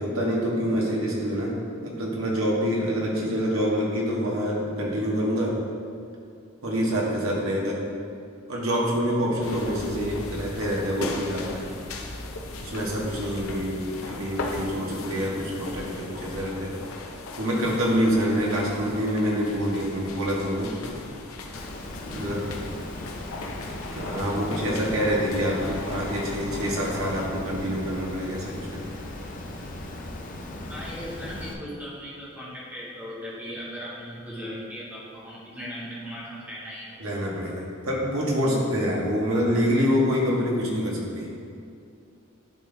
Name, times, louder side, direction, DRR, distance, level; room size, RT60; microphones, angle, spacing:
voice 1, 0.0-1.6 1.8-5.5 6.6-7.8 8.5-11.7 12.6-16.7 17.4-21.1 22.0-22.6 23.9-28.8 37.0-41.3, equal, 80° right, -3 dB, 1.5 m, -26 dB
sound 1, 9.4-27.3, left 2 dB, 85° left, 0.7 m, -37 dB
Water, 21.5-31.5, left 1 dB, 40° left, 0.6 m, -38 dB
voice 2, 30.7-37.0, equal, 10° right, -8 dB, 1.6 m, -38 dB
11.0 x 4.2 x 3.4 m, 2.5 s
head